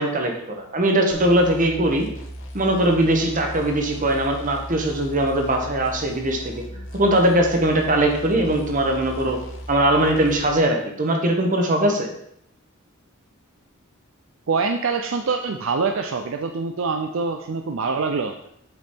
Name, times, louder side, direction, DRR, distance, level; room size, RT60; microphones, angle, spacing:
voice 1, 0.0-2.1 2.5-6.5 6.9-9.4 9.7-12.1, right 1 dB, 40° right, 3 dB, 1.3 m, -20 dB
sound 1, 1.1-10.6, equal, 65° left, 1.3 m, -37 dB
voice 2, 14.5-18.3, right 4 dB, 65° right, 5 dB, 0.5 m, -24 dB
8.0 x 5.2 x 4.5 m, 0.73 s
head